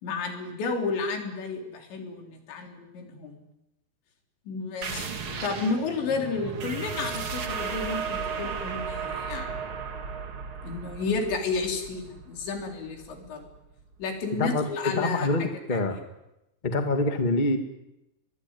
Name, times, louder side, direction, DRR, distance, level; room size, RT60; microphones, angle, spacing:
voice 1, 0.0-3.4 4.5-5.1 5.4-9.6 10.6-13.5 14.0-15.8, left 4 dB, 75° left, 3 dB, 6.1 m, -32 dB
sound 1, 4.8-14.0, right 5 dB, 40° right, 2.1 m, -35 dB
voice 2, 14.4-16.0 16.6-17.6, left 2 dB, 35° left, 6 dB, 0.7 m, -26 dB
23.5 x 22.0 x 9.7 m, 0.93 s
omnidirectional pair, 5.2 m